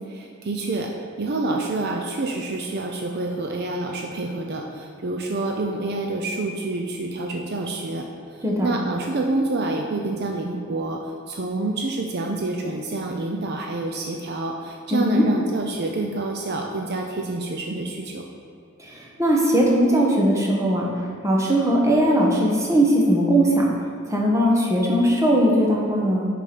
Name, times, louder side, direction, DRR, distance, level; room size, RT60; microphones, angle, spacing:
voice 1, 0.1-18.2, right 2 dB, 50° right, 2 dB, 0.5 m, -28 dB
voice 2, 14.9-15.2 18.8-20.9 21.2-23.7 24.1-26.3, equal, 15° right, -3 dB, 1.1 m, -19 dB
6.3 x 5.0 x 5.9 m, 2.5 s
head